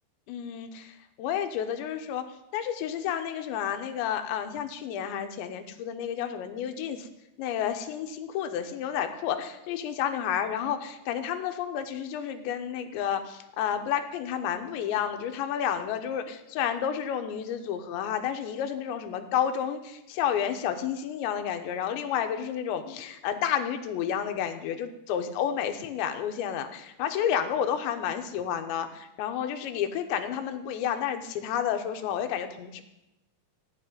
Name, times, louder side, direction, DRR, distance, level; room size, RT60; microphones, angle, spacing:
voice 1, 0.3-2.3 2.5-7.1 7.4-32.8, left 9 dB, 90° left, 7 dB, 3.3 m, -31 dB
16.5 x 6.0 x 9.3 m, 0.91 s
omnidirectional pair, 5.0 m